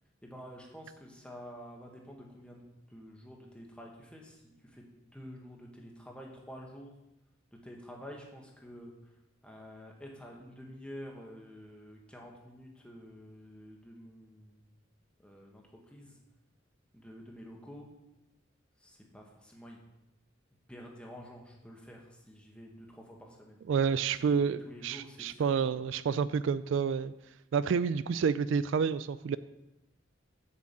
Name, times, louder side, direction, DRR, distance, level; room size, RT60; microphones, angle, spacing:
voice 1, 0.2-6.9 7.6-8.9 9.4-14.6 15.2-16.2 16.9-17.9 18.8-19.8 20.7-23.6 24.2-25.8, equal, 5° left, -1 dB, 1.5 m, -49 dB
voice 2, 23.7-27.1 27.5-29.4, right 6 dB, 65° right, 15 dB, 0.3 m, -29 dB
7.2 x 6.3 x 7.5 m, 0.93 s
head